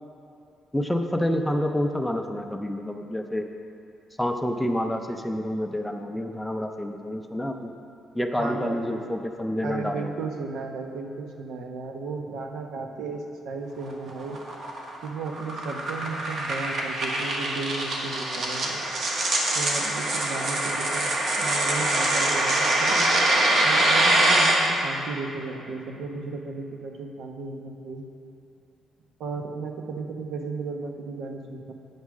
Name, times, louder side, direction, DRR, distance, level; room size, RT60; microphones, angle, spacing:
voice 1, 0.7-3.5 4.2-7.7 8.1-10.1, left 1 dB, 5° left, 4 dB, 0.4 m, -28 dB
voice 2, 8.4-8.9 9.6-14.4 15.0-18.8 19.5-21.1 21.4-23.0 23.5-28.1 29.2-31.7, right 4 dB, 75° right, 3 dB, 0.9 m, -34 dB
sound 1, 13.8-24.5, right 1 dB, 55° right, 1.3 m, -24 dB
8.9 x 5.5 x 6.1 m, 2.7 s
cardioid pair, 160°, 0 cm